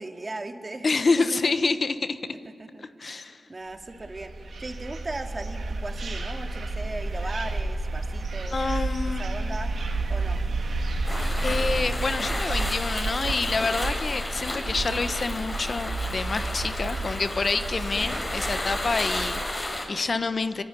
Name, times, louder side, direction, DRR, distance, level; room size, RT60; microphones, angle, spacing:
voice 1, 0.0-0.9 1.2-1.5 2.6-4.3 4.6-8.6 9.2-9.7 10.1-10.4, right 2 dB, 35° right, 5 dB, 2.4 m, -37 dB
voice 2, 0.8-2.2 2.8-3.4 8.5-9.2 11.4-20.6, left 4 dB, 55° left, 11 dB, 1.1 m, -27 dB
sound 1, 3.8-19.5, right 2 dB, 75° right, 2.9 m, -31 dB
sound 2, 11.0-19.9, left 1 dB, 30° left, 6.7 m, -32 dB
25.5 x 24.0 x 9.9 m, 2.5 s
cardioid pair, 55°, 0 cm